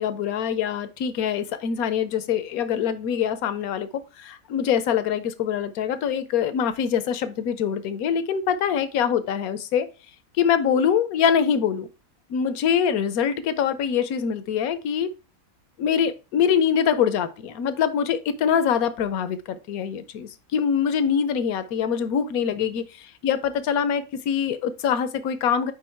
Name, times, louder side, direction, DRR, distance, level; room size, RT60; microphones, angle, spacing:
voice 1, 0.0-3.9 4.2-9.9 10.4-11.9 12.3-15.1 15.8-25.7, left 8 dB, 85° left, 1.2 m, -24 dB
5.4 x 4.9 x 4.4 m
omnidirectional pair, 1.5 m